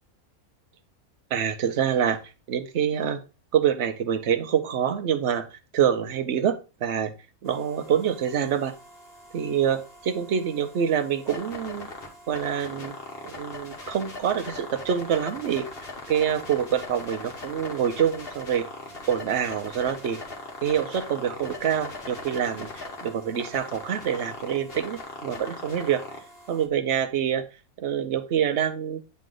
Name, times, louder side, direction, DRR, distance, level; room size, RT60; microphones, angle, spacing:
voice 1, 1.3-2.2 2.5-3.2 3.5-5.5 5.7-7.1 7.4-8.7 9.3-11.9 12.3-12.9 13.2-15.7 16.1-18.6 19.1-20.2 20.6-26.0 26.5-27.4 27.8-29.0, right 8 dB, 60° right, 9 dB, 0.9 m, -26 dB
sound 1, 7.4-26.6, left 2 dB, 40° left, 1.4 m, -40 dB
9.1 x 3.2 x 3.8 m, 0.31 s
omnidirectional pair, 1.6 m